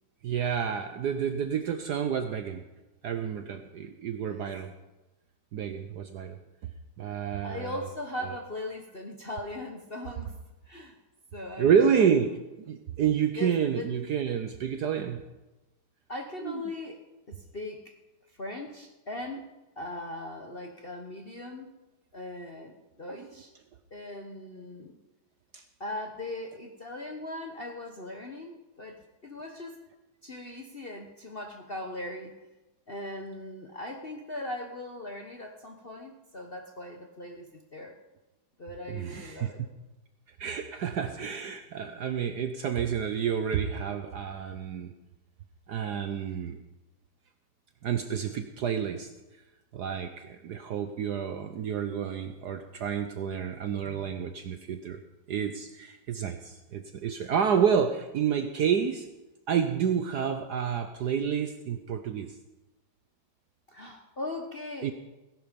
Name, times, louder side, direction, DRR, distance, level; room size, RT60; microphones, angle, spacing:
voice 1, 0.2-2.6 3.0-4.7 5.5-6.4 7.0-7.8 11.6-12.3 12.7-15.2 16.4-16.6 23.1-23.2 25.5-25.6 38.9-39.5 40.4-44.9 45.7-46.6 47.8-49.1 49.7-55.0 55.3-59.1 59.5-62.3 64.8-64.9, right 7 dB, 65° right, 8 dB, 1.1 m, -29 dB
voice 2, 7.4-10.3 10.7-11.0 11.3-12.1 13.3-13.8 16.1-17.0 17.5-17.9 18.4-19.4 19.8-21.7 22.1-22.7 23.0-23.5 23.9-24.9 25.8-28.9 29.2-29.8 30.2-32.3 32.9-37.9 38.6-39.6 63.7-64.9, left 2 dB, 40° left, 3 dB, 0.9 m, -39 dB
17.5 x 11.0 x 5.2 m, 1.1 s
omnidirectional pair, 2.4 m